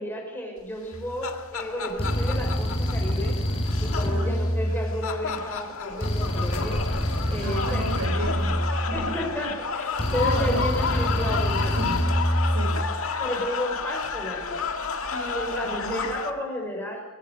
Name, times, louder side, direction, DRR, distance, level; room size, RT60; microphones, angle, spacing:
voice 1, 0.0-3.4 3.8-6.8 7.3-7.9 8.9-11.8 13.2-14.7 15.1-17.0, equal, 10° left, 1 dB, 5.8 m, -32 dB
sound 1, 0.8-16.3, left 5 dB, 65° left, 1.9 m, -31 dB
sound 2, 0.9-1.2 2.0-5.3 6.0-9.3 10.0-12.9, equal, 25° left, 4.1 m, -26 dB
voice 2, 4.1-4.5 7.3-9.2 10.2-10.7 11.7-12.2 12.5-12.9 15.6-16.1, right 2 dB, 80° right, 3 dB, 6.2 m, -35 dB
23.5 x 17.0 x 6.7 m, 1.2 s
head